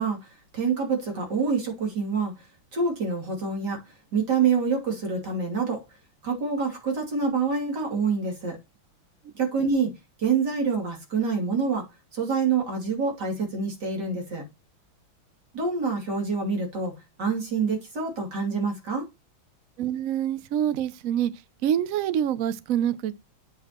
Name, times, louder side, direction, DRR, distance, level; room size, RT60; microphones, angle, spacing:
voice 1, 0.0-2.3 2.7-3.8 4.1-5.8 6.2-8.6 9.3-9.9 10.2-11.9 12.1-14.4 15.5-16.9 17.2-19.1, right 5 dB, 55° right, 3.4 m, -26 dB
voice 2, 19.8-21.3 21.6-23.1, right 10 dB, 85° right, 0.7 m, -26 dB
9.3 x 5.9 x 3.0 m
omnidirectional pair, 2.3 m